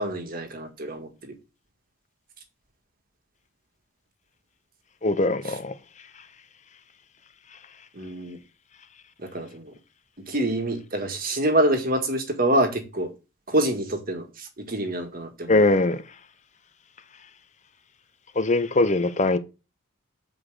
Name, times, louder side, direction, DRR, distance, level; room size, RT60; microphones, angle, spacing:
voice 1, 0.0-1.3 7.9-8.4 9.2-9.7 10.3-13.1 13.5-15.8, right 1 dB, 40° right, 1.8 m, -26 dB
voice 2, 5.0-5.8 15.5-16.0 18.4-19.4, left 2 dB, 35° left, 0.7 m, -21 dB
8.0 x 5.0 x 4.8 m
head